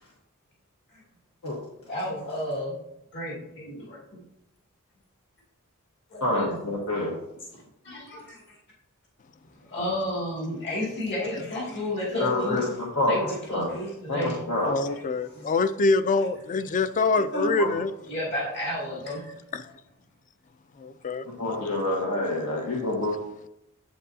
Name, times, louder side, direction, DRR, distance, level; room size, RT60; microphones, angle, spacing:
voice 1, 1.8-2.7 3.1-4.2 6.1-6.6 7.8-8.6 9.6-12.6 13.1-14.4 18.1-19.3, left 1 dB, 50° left, 2.4 m, -32 dB
voice 2, 6.2-7.1 12.2-13.1 13.5-13.7 14.1-14.8 17.3-17.7 21.4-23.1, left 2 dB, 80° left, 1.3 m, -27 dB
voice 3, 14.6-17.9 19.5-19.6 20.8-21.3, left 3 dB, 35° left, 0.4 m, -25 dB
8.3 x 7.8 x 2.7 m
head